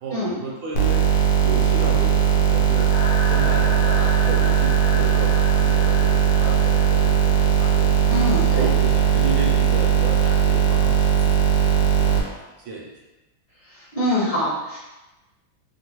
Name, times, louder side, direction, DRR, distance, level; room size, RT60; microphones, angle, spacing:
voice 1, 0.0-1.0 1.4-2.9 3.2-8.0 8.5-13.0, right 3 dB, 75° right, -3 dB, 1.3 m, -33 dB
sound 1, 0.7-12.2, right 8 dB, 75° left, 1.3 m, -18 dB
sound 2, 2.9-7.9, left 2 dB, 50° left, 0.9 m, -33 dB
voice 2, 8.1-8.7 13.7-14.8, left 1 dB, 30° left, -9 dB, 0.7 m, -24 dB
3.5 x 2.1 x 2.9 m, 1.0 s
omnidirectional pair, 2.1 m